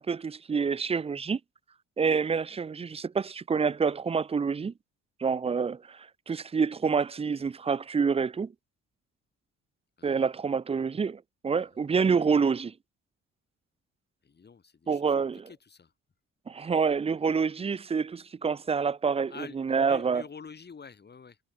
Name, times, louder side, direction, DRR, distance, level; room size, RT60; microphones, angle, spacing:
voice 1, 0.0-1.4 2.0-4.7 5.2-8.5 10.0-12.7 14.9-15.5 16.5-20.2, right 5 dB, 20° right, 0.4 m, -27 dB
voice 2, 10.0-10.3 11.7-11.8 14.2-15.0 15.3-15.9 19.3-21.4, left 5 dB, 35° left, 1.9 m, -47 dB
cardioid pair, 90°, 30 cm